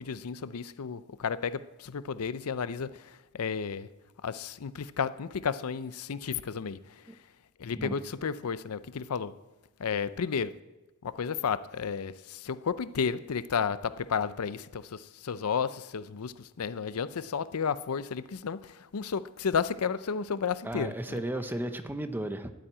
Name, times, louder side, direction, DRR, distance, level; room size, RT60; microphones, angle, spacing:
voice 1, 0.0-3.9 4.2-6.8 7.6-9.3 9.8-10.5 11.0-21.2, left 6 dB, 80° left, 15 dB, 0.5 m, -32 dB
voice 2, 20.6-22.5, right 1 dB, 10° right, 8 dB, 0.7 m, -34 dB
11.5 x 9.2 x 8.8 m, 1.1 s
head